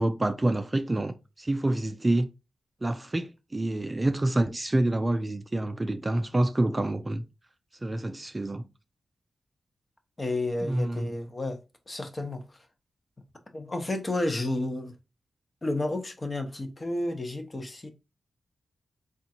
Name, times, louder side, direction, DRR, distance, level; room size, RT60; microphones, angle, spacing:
voice 1, 0.0-2.3 2.8-7.3 7.8-8.6 10.6-11.1, right 1 dB, 25° right, 0.4 m, -27 dB
voice 2, 10.2-11.6 11.9-12.4 13.5-14.9 15.6-17.9, left 2 dB, 30° left, 0.9 m, -31 dB
3.7 x 2.5 x 4.3 m
cardioid pair, 80°, 0 cm